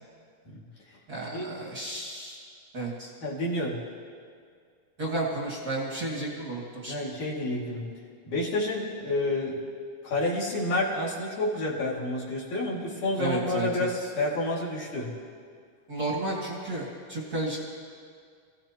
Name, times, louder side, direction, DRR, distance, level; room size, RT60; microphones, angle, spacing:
voice 1, 1.1-2.4 2.7-3.1 5.0-6.9 13.2-13.9 15.9-17.6, right 2 dB, 45° right, -4 dB, 1.2 m, -32 dB
voice 2, 3.2-3.8 6.9-7.9 8.2-9.6 10.0-15.1, left 1 dB, 50° left, -6 dB, 3.4 m, -29 dB
27.5 x 16.5 x 2.9 m, 2.1 s
omnidirectional pair, 5.0 m